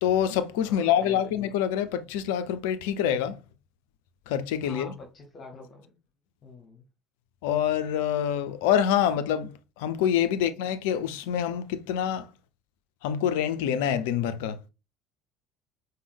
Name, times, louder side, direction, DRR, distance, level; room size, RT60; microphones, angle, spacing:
voice 1, 0.0-3.4 4.3-4.9 7.4-9.5 9.8-12.3 13.0-14.6, left 9 dB, 65° left, 0.4 m, -26 dB
voice 2, 0.6-1.2 4.6-5.9 6.4-6.8, left 3 dB, 35° left, 0.9 m, -46 dB
5.1 x 2.1 x 3.3 m
figure-of-eight pair, 60°, 0 cm